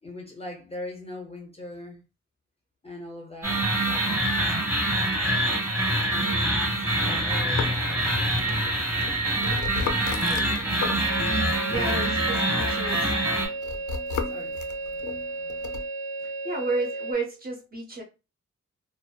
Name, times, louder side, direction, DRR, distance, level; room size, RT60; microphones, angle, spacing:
voice 1, 0.0-2.0 2.8-4.1 6.1-6.7 7.0-8.1 9.3-9.6 11.6-12.2 14.3-14.6, left 2 dB, 20° left, 0.5 m, -41 dB
sound 1, 3.4-13.5, right 1 dB, 10° right, 1.0 m, -25 dB
sound 2, 7.4-11.4 11.7-15.8, left 5 dB, 80° left, 0.5 m, -36 dB
voice 2, 9.3-9.9 10.3-10.6 11.7-13.1 16.4-18.0, right 3 dB, 30° right, 0.6 m, -32 dB
sound 3, 11.1-17.1, right 3 dB, 70° right, 0.5 m, -34 dB
2.6 x 2.2 x 2.2 m
wide cardioid pair, 170°, 29 cm